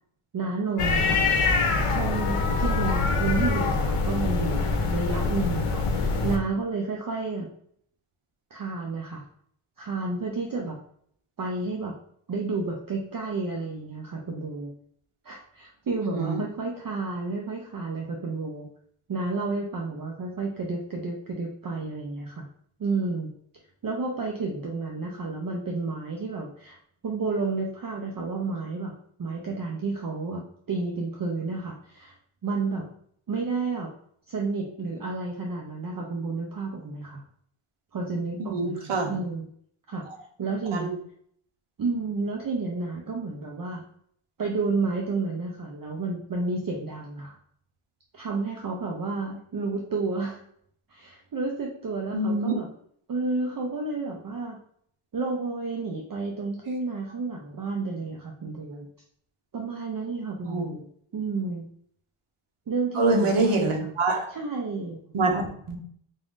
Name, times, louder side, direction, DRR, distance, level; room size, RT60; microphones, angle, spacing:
voice 1, 0.3-1.2 1.9-4.6 4.9-7.5 8.5-9.2 9.8-10.8 11.4-12.0 12.3-14.7 15.2-18.7 19.1-22.4 22.8-23.3 23.8-26.8 27.0-28.9 29.2-30.4 30.7-32.1 32.4-32.9 33.3-33.9 34.3-37.2 37.9-39.5 39.9-40.1 40.4-40.9 41.8-43.8 44.4-47.4 48.1-50.4 50.9-52.7 53.1-54.6 55.1-58.9 59.5-60.9 61.1-61.6 62.7-63.9 64.3-65.2, right 3 dB, 45° right, 0 dB, 0.5 m, -31 dB
sound 1, 0.8-6.4, left 4 dB, 85° left, 0.7 m, -24 dB
voice 2, 16.0-16.4 38.4-39.1 40.7-40.9 52.1-52.6 60.5-60.7 62.9-64.3 65.1-65.8, right 2 dB, 80° right, 1 dB, 0.9 m, -25 dB
3.7 x 2.5 x 3.5 m, 0.65 s
wide cardioid pair, 125°, 50 cm